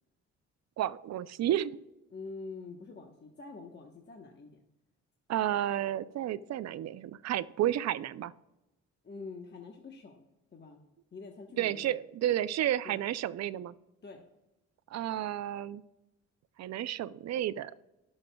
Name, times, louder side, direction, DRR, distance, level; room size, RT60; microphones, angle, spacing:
voice 1, 0.8-1.8 5.3-8.3 11.6-13.7 14.9-15.8 16.6-17.7, right 12 dB, 60° right, 16 dB, 0.5 m, -31 dB
voice 2, 2.1-4.6 9.0-10.2 10.5-10.8 11.1-11.9 12.8-13.0 14.0-14.2, left 4 dB, 35° left, 2 dB, 1.2 m, -46 dB
17.5 x 6.4 x 2.3 m, 0.97 s
cardioid pair, 90°, 30 cm